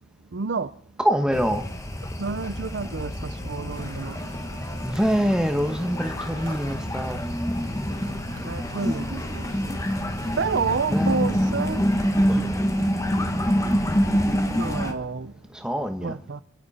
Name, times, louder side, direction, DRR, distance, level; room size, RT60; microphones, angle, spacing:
voice 1, 0.3-0.8 2.2-4.2 8.4-9.5 10.4-11.8 12.8-12.9 14.5-15.3 16.0-16.4, right 5 dB, 55° right, 0.5 m, -29 dB
voice 2, 1.0-1.6 4.8-7.2 10.9-11.2 12.3-12.6 13.9-14.0 15.5-16.1, equal, 5° right, 1.3 m, -25 dB
sound 1, 1.3-14.9, equal, 15° left, 1.4 m, -26 dB
sound 2, 2.3-15.7, left 3 dB, 60° left, 5.8 m, -49 dB
sound 3, 3.7-12.3, right 2 dB, 75° right, 4.9 m, -46 dB
27.5 x 11.5 x 4.3 m
head